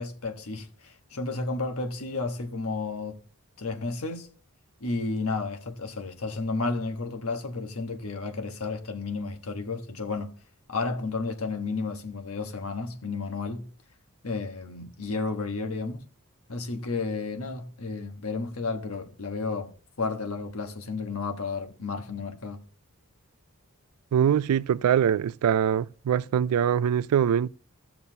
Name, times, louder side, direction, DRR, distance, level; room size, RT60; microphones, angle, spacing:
voice 1, 0.0-3.2 3.6-4.3 4.8-10.3 10.7-13.7 14.2-16.0 16.5-19.7 20.0-22.6, left 3 dB, 75° left, 1.3 m, -32 dB
voice 2, 24.1-27.5, right 8 dB, 85° right, 0.3 m, -23 dB
15.0 x 6.8 x 2.8 m
head